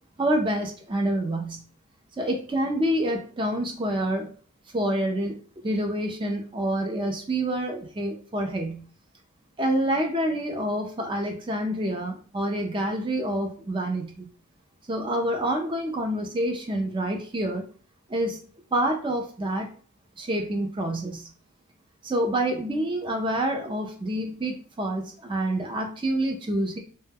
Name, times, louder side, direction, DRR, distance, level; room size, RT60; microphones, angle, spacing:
voice 1, 0.2-1.6 2.2-4.3 4.7-5.4 5.6-8.8 9.6-14.3 14.9-17.7 18.1-18.4 18.7-19.7 20.2-21.3 22.0-26.8, right 1 dB, 20° right, 3 dB, 0.4 m, -27 dB
2.1 x 2.1 x 3.3 m, 0.41 s
head